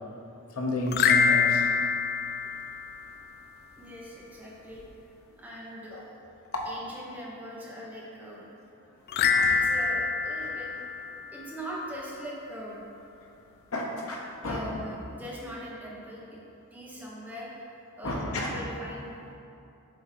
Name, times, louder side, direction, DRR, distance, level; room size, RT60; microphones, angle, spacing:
voice 1, 0.6-1.6 9.3-9.5 13.7-14.6 18.0-18.5, left 1 dB, 75° left, -2 dB, 1.1 m, -31 dB
sound 1, 0.9-3.4 9.1-11.7, left 5 dB, 45° left, 0.3 m, -26 dB
voice 2, 3.8-5.0 5.4-6.2 6.6-8.5 9.1-9.2 9.5-11.0 11.3-13.3 14.3-16.4 16.7-17.7 18.0-19.4, equal, 5° right, -5 dB, 1.1 m, -41 dB
7.6 x 3.7 x 4.5 m, 2.7 s
head